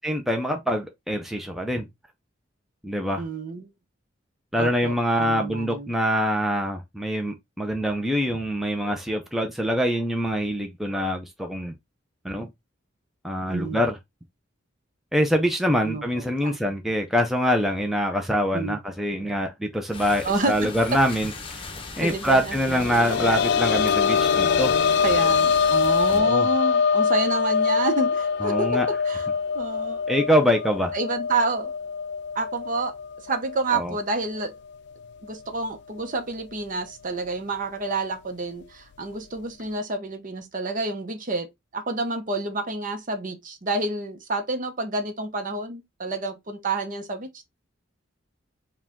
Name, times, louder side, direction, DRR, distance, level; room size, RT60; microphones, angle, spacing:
voice 1, 0.0-1.9 2.8-3.2 4.5-11.7 12.2-12.5 13.2-13.9 15.1-21.3 22.0-24.7 26.1-26.5 28.4-28.9 30.1-30.9 33.7-33.9, equal, ahead, 0.5 m, -24 dB
voice 2, 3.2-3.7 4.6-5.9 13.5-13.8 15.8-16.6 18.5-18.8 20.2-20.8 22.0-22.9 25.0-29.3 29.5-30.0 30.9-31.7 32.3-32.9 33.2-34.5 35.2-47.4, right 3 dB, 45° right, 0.8 m, -29 dB
sound 1, 19.9-26.2, left 3 dB, 30° left, 0.8 m, -38 dB
sound 2, 22.6-34.0 34.4-34.5 36.0-36.1, left 6 dB, 60° left, 0.3 m, -24 dB
4.8 x 2.3 x 3.6 m
head